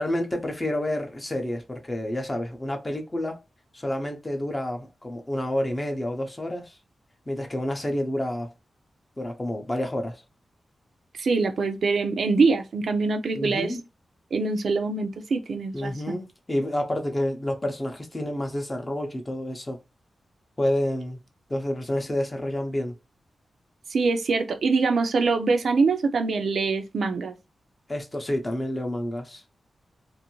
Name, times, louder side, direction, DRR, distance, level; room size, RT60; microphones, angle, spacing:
voice 1, 0.0-3.4 3.7-6.8 7.3-8.5 9.2-10.2 13.3-13.8 15.7-19.8 20.6-21.2 21.5-22.9 27.9-29.4, left 1 dB, 20° left, 0.6 m, -29 dB
voice 2, 11.2-13.7 14.3-15.9 23.9-27.3, right 4 dB, 65° right, 0.5 m, -24 dB
2.6 x 2.5 x 2.9 m
wide cardioid pair, 140°, 0 cm